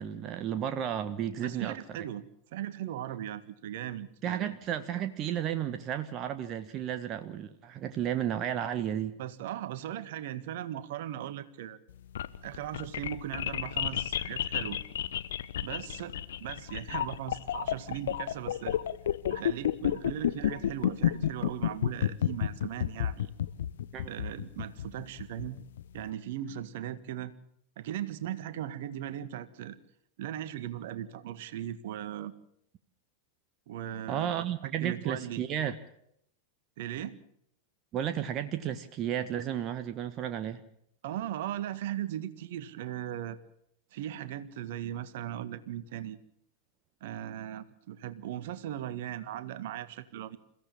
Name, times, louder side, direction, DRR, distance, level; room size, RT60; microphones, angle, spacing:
voice 1, 0.0-1.8 4.2-9.2 23.9-24.1 34.1-35.8 37.9-40.6, right 10 dB, 35° right, 9 dB, 1.4 m, -33 dB
voice 2, 1.4-4.5 9.2-11.8 12.4-14.8 15.6-16.1 16.4-18.8 19.3-23.3 24.1-25.6 25.9-27.3 27.8-29.8 30.2-32.3 33.7-35.4 36.8-37.2 41.0-43.4 43.9-46.2 47.0-50.4, right 11 dB, 55° right, 13 dB, 1.6 m, -38 dB
sound 1, 11.9-26.0, left 11 dB, 60° left, 1.0 m, -31 dB
28.5 x 16.0 x 7.2 m, 0.72 s
figure-of-eight pair, 90°, 0 cm